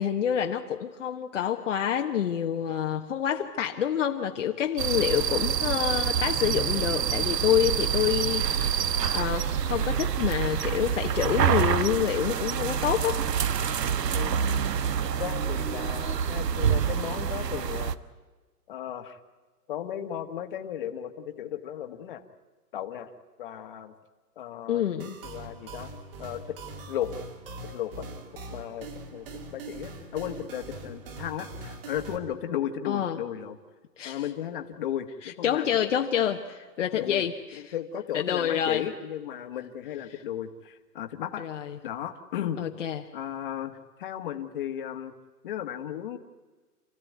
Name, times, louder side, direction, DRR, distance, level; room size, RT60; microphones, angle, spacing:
voice 1, 0.0-13.2 24.7-25.2 32.9-33.2 34.0-34.2 35.2-37.3 38.1-38.9 41.4-41.8 42.6-43.0, left 9 dB, 50° left, 3 dB, 1.2 m, -27 dB
sound 1, 4.8-17.9, right 8 dB, 90° right, 1.3 m, -27 dB
voice 2, 15.2-17.9 18.7-19.2 19.7-22.2 22.7-23.1 23.4-23.9 24.3-24.9 25.2-25.9 26.2-26.6 26.9-27.1 27.6-28.0 28.5-33.6 34.0-35.7 36.9-37.2 37.5-41.5 41.8-42.6 43.1-45.1 45.4-46.2, left 10 dB, 35° left, 6 dB, 1.5 m, -35 dB
sound 2, 25.0-32.2, right 3 dB, 35° right, 2.6 m, -42 dB
28.5 x 15.0 x 9.4 m, 1.3 s
hypercardioid pair, 170°, 47 cm